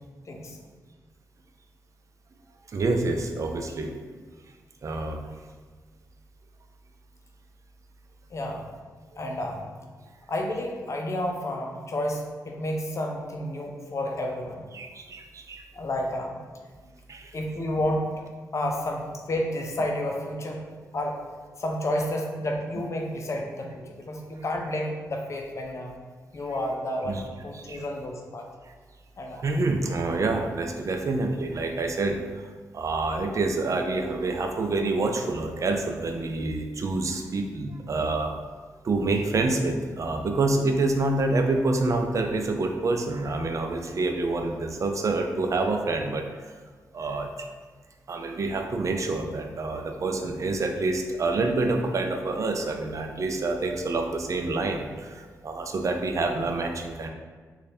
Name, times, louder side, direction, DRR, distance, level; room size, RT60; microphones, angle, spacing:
voice 1, 0.3-0.6 8.3-8.6 9.2-9.7 10.3-14.7 15.7-16.4 17.3-18.2 18.5-20.7 20.9-21.2 21.6-25.9 26.3-28.5 29.2-29.4, left 1 dB, 50° left, 1 dB, 0.6 m, -30 dB
voice 2, 2.7-3.9 4.8-5.3 14.7-15.6 17.1-17.3 27.1-27.2 27.7-27.8 29.4-38.3 38.8-46.5 46.9-47.3 48.1-57.1, right 3 dB, 50° right, 4 dB, 0.5 m, -27 dB
3.1 x 2.4 x 4.2 m, 1.5 s
cardioid pair, 65°, 7 cm